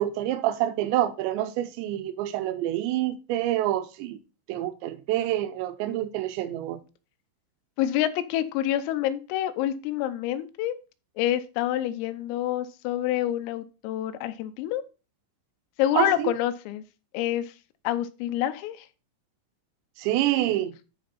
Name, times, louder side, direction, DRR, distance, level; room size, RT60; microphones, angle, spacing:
voice 1, 0.0-4.2 4.5-6.8 15.9-16.3 20.0-20.8, right 13 dB, 85° right, 2.6 m, -27 dB
voice 2, 7.8-10.7 11.2-14.8 15.8-16.8 17.1-17.5 17.8-18.9, left 12 dB, 85° left, 3.4 m, -27 dB
12.0 x 4.5 x 4.1 m
omnidirectional pair, 5.8 m